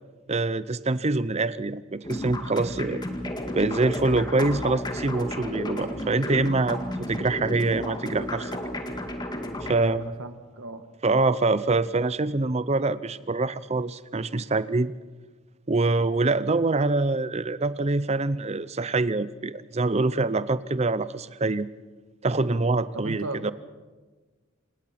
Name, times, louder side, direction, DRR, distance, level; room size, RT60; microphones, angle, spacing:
voice 1, 0.3-3.1 3.5-6.8 7.1-8.5 9.6-10.0 11.0-14.9 15.7-21.7 22.2-23.5, right 3 dB, 30° right, 16 dB, 0.7 m, -25 dB
sound 1, 2.0-9.7, left 1 dB, 20° left, 2.0 m, -33 dB
voice 2, 9.7-10.8 22.9-23.5, right 2 dB, 85° right, 9 dB, 1.7 m, -36 dB
26.5 x 19.5 x 5.9 m, 1.3 s
head